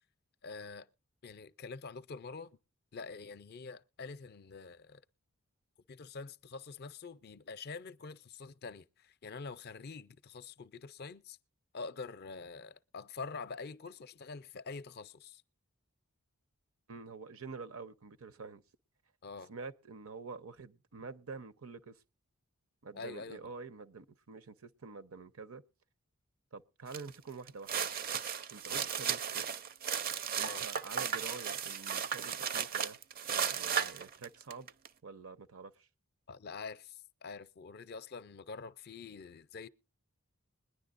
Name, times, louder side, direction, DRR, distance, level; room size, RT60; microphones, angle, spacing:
voice 1, 0.4-0.9 1.2-2.6 2.9-5.0 5.9-11.4 11.7-15.4 19.2-19.5 22.9-23.5 28.7-28.9 30.4-30.6 36.3-39.7, left 4 dB, 45° left, 0.5 m, -46 dB
voice 2, 16.9-18.6 19.5-22.0 22.8-25.6 26.5-27.9 28.5-29.4 30.4-33.0 33.3-34.7 35.0-35.9, right 4 dB, 80° right, 0.8 m, -47 dB
sound 1, 26.9-27.1 27.5-34.9, right 8 dB, 45° right, 0.5 m, -35 dB
21.0 x 10.0 x 2.5 m
head